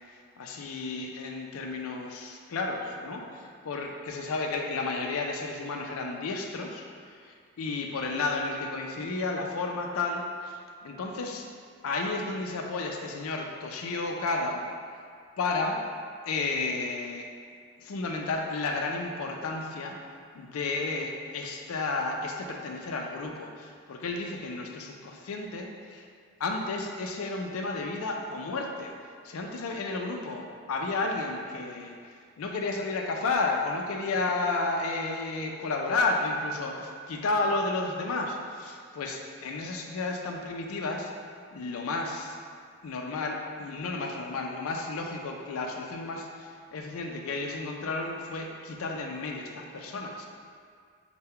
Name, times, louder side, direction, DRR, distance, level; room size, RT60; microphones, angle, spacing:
voice 1, 0.4-11.4 11.8-14.6 15.4-15.8 16.3-17.2 17.8-20.1 20.3-26.1 26.4-28.9 29.2-32.0 32.4-41.1 41.5-42.4 42.8-50.3, left 3 dB, 75° left, 1 dB, 0.4 m, -32 dB
5.5 x 2.2 x 3.6 m, 2.1 s
head